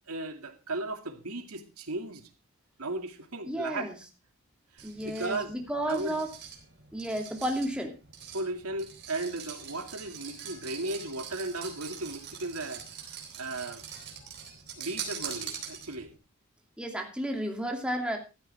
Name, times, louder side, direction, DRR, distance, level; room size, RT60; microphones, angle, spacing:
voice 1, 0.1-2.3 2.8-3.9 4.7-5.5 5.9-6.2 8.3-13.8 14.8-16.1, right 2 dB, 75° right, 2.5 m, -36 dB
voice 2, 3.4-4.0 4.8-6.3 6.9-8.0 16.8-18.2, equal, 5° right, 2.7 m, -32 dB
sound 1, 4.8-16.2, right 8 dB, 45° right, 3.9 m, -43 dB
15.0 x 13.0 x 3.5 m
head